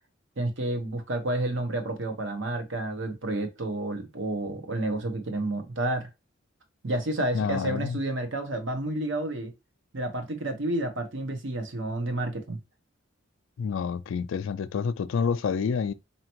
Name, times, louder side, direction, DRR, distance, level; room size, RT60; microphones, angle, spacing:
voice 1, 0.4-6.1 6.8-9.5 9.9-12.6, right 1 dB, 60° right, 0.9 m, -30 dB
voice 2, 7.3-8.0 13.6-15.9, left 6 dB, 70° left, 0.3 m, -28 dB
4.3 x 2.9 x 2.9 m
head